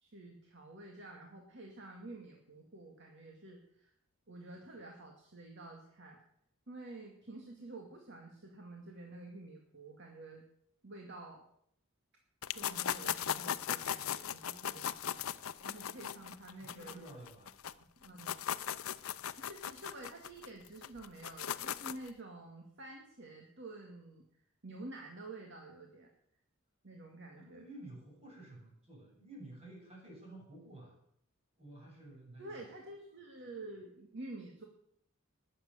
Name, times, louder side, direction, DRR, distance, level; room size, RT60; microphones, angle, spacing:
voice 1, 0.0-3.9 4.3-6.2 6.7-10.4 10.8-11.4 12.5-15.2 15.6-17.0 17.8-18.3 19.4-24.2 24.6-26.1 26.8-27.6 32.4-34.6, right 2 dB, 55° right, 1 dB, 2.3 m, -49 dB
sound 1, 12.4-17.7 18.0-22.1, left 9 dB, 85° left, 0.6 m, -38 dB
voice 2, 15.8-16.1 16.5-17.6 27.4-30.9 31.6-32.5, right 1 dB, 30° right, -2 dB, 7.5 m, -52 dB
20.5 x 7.9 x 7.1 m, 0.70 s
head